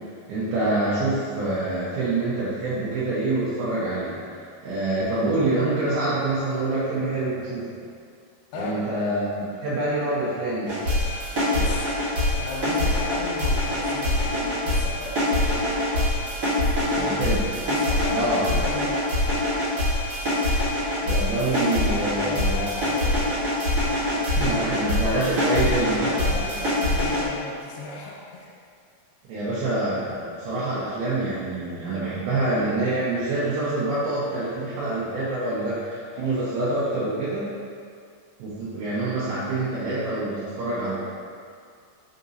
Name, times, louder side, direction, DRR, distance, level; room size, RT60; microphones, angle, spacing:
voice 1, 0.3-4.2 4.6-7.8 8.5-9.3 9.6-10.8 16.9-17.4 18.1-18.4 21.0-22.7 24.4-26.4 29.3-37.5 38.4-41.0, right 2 dB, 80° right, -10 dB, 2.7 m, -26 dB
voice 2, 8.5-8.8 11.5-11.9 12.4-16.2 16.7-17.2 17.7-19.1 21.1-23.3 26.2-28.5 36.1-36.4, left 3 dB, 90° left, -5 dB, 2.6 m, -36 dB
sound 1, 10.7-27.2, left 1 dB, 50° right, 1.3 m, -24 dB
6.8 x 5.2 x 2.6 m, 2.3 s
omnidirectional pair, 4.5 m